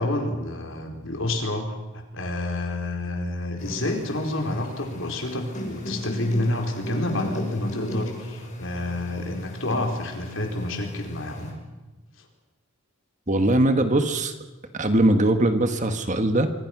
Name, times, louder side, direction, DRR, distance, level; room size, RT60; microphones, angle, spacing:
voice 1, 0.0-11.5 12.2-12.3, left 1 dB, 65° left, 3 dB, 4.6 m, -29 dB
sound 1, 3.6-11.5, left 1 dB, 35° left, 5.9 m, -37 dB
voice 2, 13.3-14.3 14.7-16.5, right 1 dB, 35° right, 8 dB, 1.6 m, -21 dB
26.0 x 25.0 x 6.2 m, 1.2 s
head